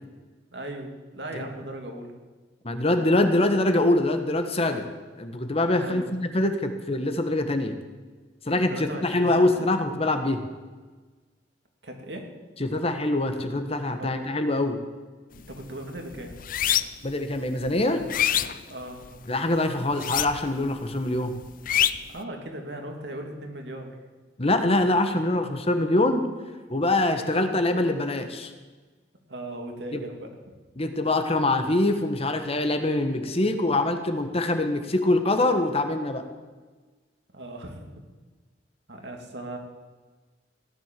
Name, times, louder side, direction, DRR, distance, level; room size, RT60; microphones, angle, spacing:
voice 1, 0.5-2.1 5.7-6.1 8.5-9.7 11.8-12.3 14.0-14.1 15.5-16.3 18.7-19.1 22.1-24.0 29.3-30.5 37.3-38.0 38.9-39.6, right 1 dB, 70° right, 3 dB, 2.8 m, -38 dB
voice 2, 2.6-4.9 5.2-7.7 8.5-10.4 12.6-14.8 17.0-18.0 19.3-21.4 24.4-26.2 26.7-28.5 29.9-30.0 30.8-36.2, left 2 dB, 35° left, 7 dB, 1.4 m, -24 dB
sound 1, 15.3-15.6 16.0-17.1 17.6-19.3 19.9-20.7 20.9-22.2, left 11 dB, 50° left, 0.6 m, -26 dB
16.5 x 11.0 x 7.6 m, 1.3 s
head